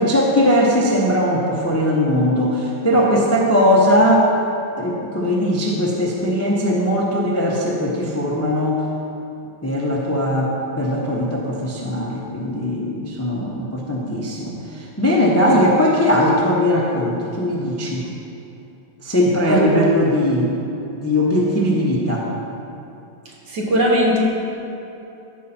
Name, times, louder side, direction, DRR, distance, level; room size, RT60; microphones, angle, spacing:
voice 1, 0.0-4.3 4.8-8.8 9.6-18.0 19.0-20.6 20.9-22.3, equal, 15° left, -3 dB, 0.6 m, -19 dB
voice 2, 23.5-24.2, right 1 dB, 65° right, -3 dB, 2.1 m, -18 dB
14.5 x 5.5 x 4.3 m, 2.9 s
omnidirectional pair, 2.0 m